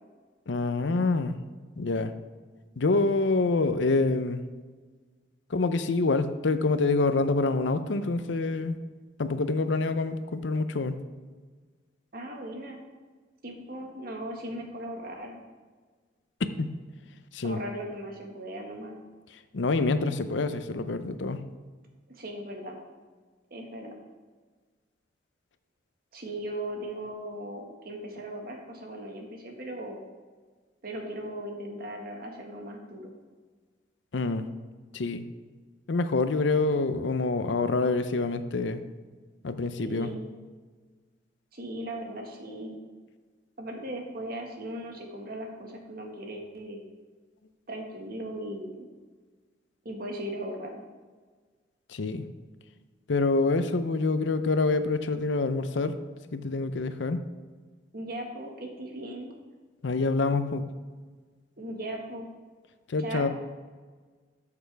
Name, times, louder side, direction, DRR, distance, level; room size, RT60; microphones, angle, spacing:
voice 1, 0.5-1.3 1.8-2.1 2.8-4.4 5.5-8.7 9.2-11.0 16.4-16.7 17.3-17.6 19.5-21.4 34.1-34.5 34.9-35.2 35.9-38.8 39.4-40.1 51.9-52.3 53.1-56.0 56.3-57.2 59.8-60.7 62.9-63.3, left 3 dB, 75° left, 11 dB, 0.6 m, -26 dB
voice 2, 12.1-12.8 13.4-15.4 17.4-19.0 22.1-22.8 23.5-23.9 26.1-30.1 30.8-33.1 39.8-40.3 41.5-42.8 43.6-46.9 47.7-48.9 49.8-50.8 57.9-59.3 61.6-62.3 63.0-63.3, right 1 dB, 50° right, 1 dB, 1.6 m, -38 dB
13.0 x 6.8 x 3.4 m, 1.5 s
head